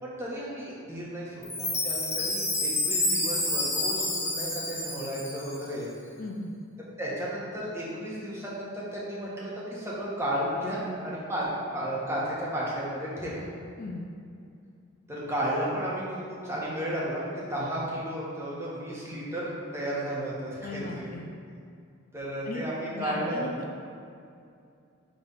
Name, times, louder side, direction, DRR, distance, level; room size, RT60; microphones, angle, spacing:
voice 1, 0.0-5.9 7.0-11.5 11.7-13.4 15.1-21.1 22.1-23.5, right 1 dB, 15° right, -6 dB, 1.3 m, -33 dB
Chime, 1.4-5.7, left 2 dB, 15° left, 1.1 m, -29 dB
voice 2, 6.2-6.5 13.8-14.1 20.6-21.3 22.4-23.7, left 2 dB, 40° left, 1 dB, 0.4 m, -37 dB
6.0 x 3.4 x 5.4 m, 2.4 s
head